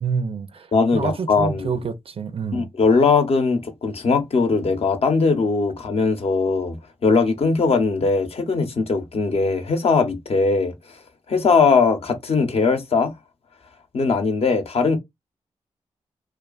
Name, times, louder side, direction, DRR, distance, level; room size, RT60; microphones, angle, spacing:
voice 1, 0.0-0.7 0.9-2.7, right 5 dB, 50° right, 0.4 m, -27 dB
voice 2, 0.7-1.8 2.5-6.8 7.0-10.8 11.3-13.1 13.9-15.0, left 4 dB, 55° left, 0.7 m, -20 dB
2.5 x 2.3 x 2.3 m
cardioid pair, 50°, 12 cm